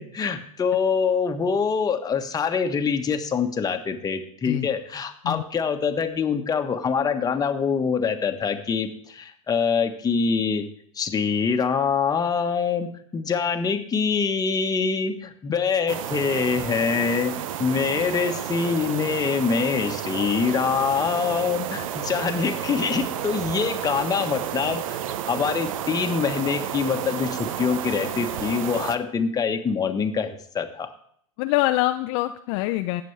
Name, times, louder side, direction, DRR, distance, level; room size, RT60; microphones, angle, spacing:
voice 1, 0.0-10.7 10.9-25.0 25.3-30.9, left 6 dB, 20° left, 5 dB, 1.3 m, -25 dB
sound 1, 15.9-29.0, right 10 dB, 70° right, 0.8 m, -31 dB
voice 2, 31.4-33.0, left 17 dB, 55° left, 9 dB, 0.5 m, -24 dB
18.0 x 6.9 x 3.3 m, 0.63 s
hypercardioid pair, 100°, 18 cm